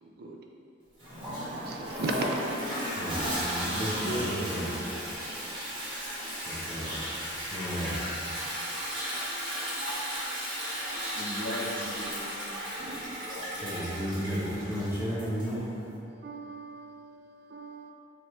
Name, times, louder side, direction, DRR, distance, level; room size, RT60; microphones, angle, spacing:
voice 1, 0.0-0.4 1.7-2.4 5.0-5.5 8.1-8.2 9.0-9.2 16.0-17.9, right 3 dB, 60° right, 2 dB, 0.4 m, -38 dB
Toilet flush, 1.0-15.6, equal, 30° right, 1.1 m, -35 dB
voice 2, 3.0-4.7 6.4-7.0 7.5-8.0 13.6-15.7, equal, 15° right, -9 dB, 1.1 m, -34 dB
voice 3, 3.6-4.9 11.1-12.6 13.3-14.0, equal, 80° left, -4 dB, 0.9 m, -37 dB
5.2 x 2.9 x 3.1 m, 2.6 s
head